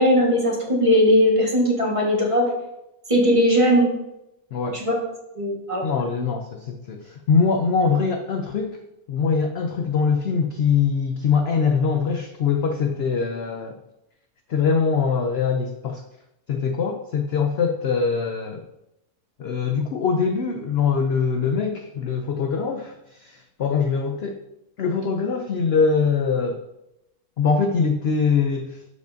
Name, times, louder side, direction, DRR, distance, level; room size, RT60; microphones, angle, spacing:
voice 1, 0.0-2.5 3.1-3.9 4.7-5.0 5.3-5.8, equal, 20° right, -2 dB, 1.4 m, -18 dB
voice 2, 4.5-4.8 5.8-8.8 9.1-13.8 14.5-16.0 16.5-18.6 19.4-24.4 24.8-26.6 27.4-28.8, left 5 dB, 70° left, 5 dB, 0.6 m, -23 dB
12.0 x 4.9 x 2.6 m, 0.88 s
omnidirectional pair, 1.7 m